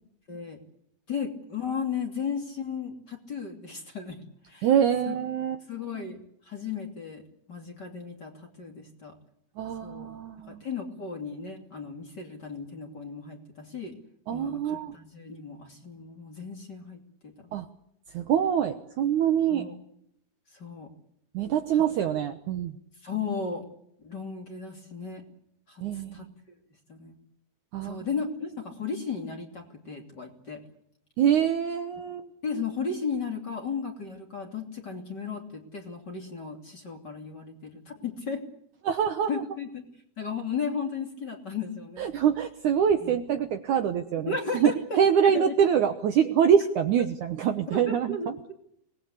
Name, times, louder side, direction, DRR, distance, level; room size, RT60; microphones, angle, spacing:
voice 1, 0.3-0.6 1.1-4.2 4.5-4.7 5.1-5.2 5.7-7.2 7.5-9.1 9.8-10.1 10.5-13.9 14.3-17.5 19.5-19.7 20.6-20.9 23.0-23.6 24.0-25.2 25.7-25.8 26.1-26.3 26.9-27.2 27.8-30.6 32.4-38.4 39.3-39.8 40.2-42.1 43.0-43.2 44.3-45.5 47.7-48.3, left 5 dB, 30° left, 3 dB, 3.0 m, -35 dB
voice 2, 4.6-5.6 9.6-10.6 14.3-15.0 17.5-17.7 18.1-19.7 21.3-22.8 25.8-26.2 27.7-28.1 31.2-32.3 38.8-39.4 42.0-48.3, right 8 dB, 65° right, 7 dB, 2.1 m, -25 dB
25.5 x 19.5 x 8.3 m, 0.73 s
omnidirectional pair, 4.5 m